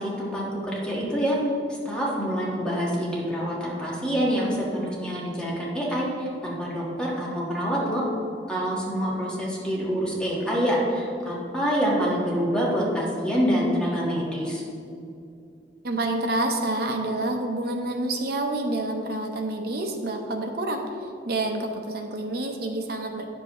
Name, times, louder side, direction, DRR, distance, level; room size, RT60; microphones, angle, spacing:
voice 1, 0.0-1.4 1.8-8.0 8.5-14.6, equal, 5° left, -5 dB, 1.4 m, -26 dB
voice 2, 15.8-23.2, right 2 dB, 60° right, 3 dB, 0.9 m, -28 dB
9.8 x 7.4 x 3.1 m, 2.6 s
head